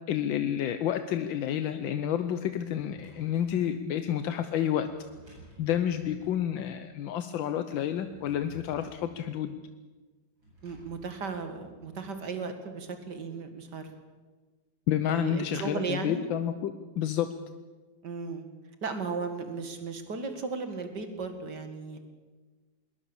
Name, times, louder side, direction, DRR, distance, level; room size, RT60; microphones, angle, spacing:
voice 1, 0.1-4.9 5.6-9.6 14.9-17.3, left 10 dB, 80° left, 10 dB, 1.6 m, -30 dB
Drawer open or close, 2.5-3.6 4.8-6.4 7.8-9.1 10.4-12.1, right 1 dB, 90° right, 9.0 m, -54 dB
voice 2, 10.6-13.9 15.1-16.2 18.0-18.5 18.8-22.0, right 4 dB, 60° right, 7 dB, 2.7 m, -35 dB
21.5 x 20.0 x 7.1 m, 1.3 s
omnidirectional pair, 2.1 m